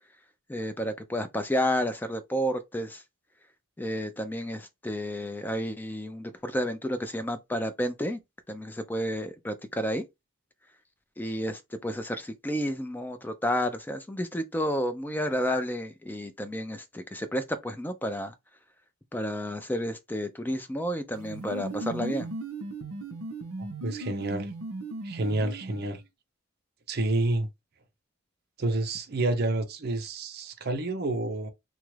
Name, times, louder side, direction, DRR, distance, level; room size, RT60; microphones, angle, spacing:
voice 1, 0.5-3.0 3.8-8.2 8.5-10.0 11.2-18.3 19.1-22.3, equal, 10° left, 0.3 m, -31 dB
sound 1, 21.1-26.0, right 2 dB, 90° right, 0.7 m, -37 dB
voice 2, 23.6-24.5 25.0-26.0 26.9-27.5 28.6-31.5, right 2 dB, 50° right, 0.6 m, -29 dB
3.0 x 2.3 x 3.1 m
head